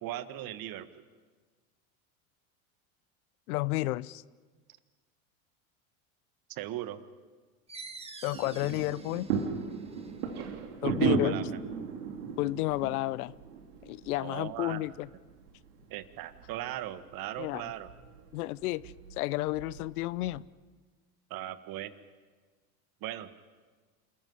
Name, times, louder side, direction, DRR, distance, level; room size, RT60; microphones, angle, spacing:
voice 1, 0.0-1.0 6.5-7.0 10.8-11.4 14.2-14.8 15.9-17.9 21.3-21.9 23.0-23.3, right 13 dB, 50° right, 12 dB, 1.6 m, -38 dB
voice 2, 3.5-4.2 8.2-9.4 10.8-11.4 12.4-13.3 13.8-15.1 17.4-17.6 18.3-20.5, left 18 dB, 80° left, 21 dB, 0.7 m, -31 dB
sound 1, 7.7-13.0, right 3 dB, 15° right, 1.9 m, -50 dB
sound 2, 8.3-20.4, right 6 dB, 85° right, 2.9 m, -36 dB
27.5 x 14.5 x 9.6 m, 1.4 s
hypercardioid pair, 95°, 44 cm